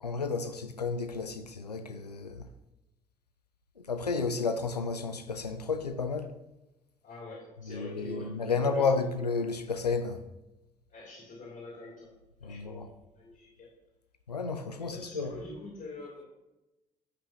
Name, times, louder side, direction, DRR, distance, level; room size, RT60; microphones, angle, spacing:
voice 1, 0.0-2.5 3.8-6.3 7.6-10.2 12.4-12.9 14.3-15.3, left 4 dB, 90° left, 9 dB, 0.5 m, -32 dB
voice 2, 7.0-9.1 10.9-12.1 12.4-13.7 14.8-16.2, left 2 dB, 50° left, -5 dB, 3.0 m, -45 dB
11.5 x 5.6 x 2.9 m, 0.98 s
figure-of-eight pair, 50°, 20 cm